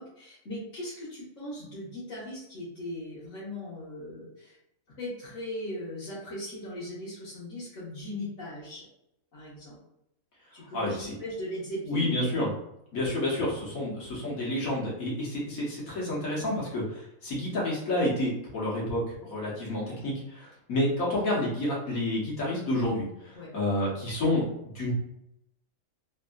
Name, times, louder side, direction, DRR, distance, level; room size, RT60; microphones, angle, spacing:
voice 1, 0.0-4.6 5.0-8.8 9.3-9.8 10.5-12.1 23.3-23.5, left 1 dB, 65° left, -11 dB, 1.4 m, -39 dB
voice 2, 10.7-11.2 11.9-12.5 12.9-24.4 24.7-24.9, left 1 dB, 90° left, -5 dB, 1.5 m, -29 dB
3.3 x 2.5 x 2.3 m, 0.81 s
omnidirectional pair, 1.4 m